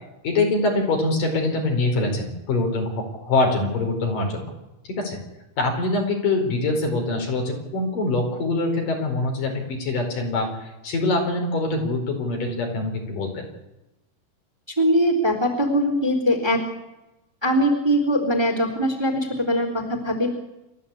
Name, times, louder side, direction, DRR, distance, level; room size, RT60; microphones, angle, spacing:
voice 1, 0.2-4.5 4.8-5.2 5.6-13.5, left 2 dB, 75° left, 2 dB, 6.2 m, -24 dB
voice 2, 14.8-16.6 17.4-20.3, equal, 5° right, 5 dB, 3.3 m, -21 dB
28.5 x 13.5 x 8.5 m, 0.97 s
omnidirectional pair, 3.9 m